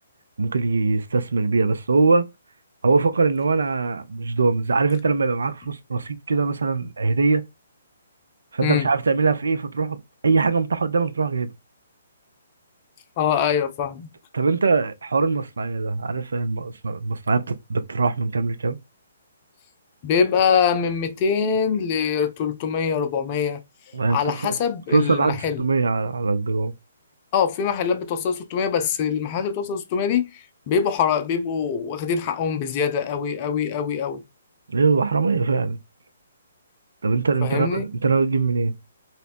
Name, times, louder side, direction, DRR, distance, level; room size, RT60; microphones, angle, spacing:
voice 1, 0.4-2.3 2.8-7.4 8.5-11.5 14.3-18.8 23.9-24.5 24.9-26.7 34.7-35.8 37.0-38.7, right 4 dB, 65° right, 0.3 m, -22 dB
voice 2, 13.2-14.1 20.0-23.6 24.1-25.6 27.3-34.2 37.4-37.8, left 7 dB, 30° left, 0.4 m, -23 dB
2.7 x 2.0 x 2.5 m
figure-of-eight pair, 130°, 0 cm